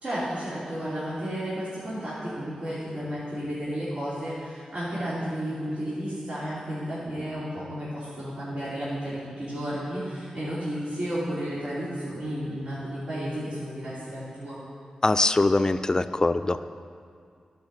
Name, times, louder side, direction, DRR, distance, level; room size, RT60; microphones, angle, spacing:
voice 1, 0.0-14.6, equal, 60° right, -11 dB, 2.9 m, -32 dB
voice 2, 15.0-16.6, left 2 dB, 30° left, 11 dB, 0.4 m, -22 dB
11.0 x 5.2 x 6.5 m, 2.2 s
cardioid pair, 50°, 2 cm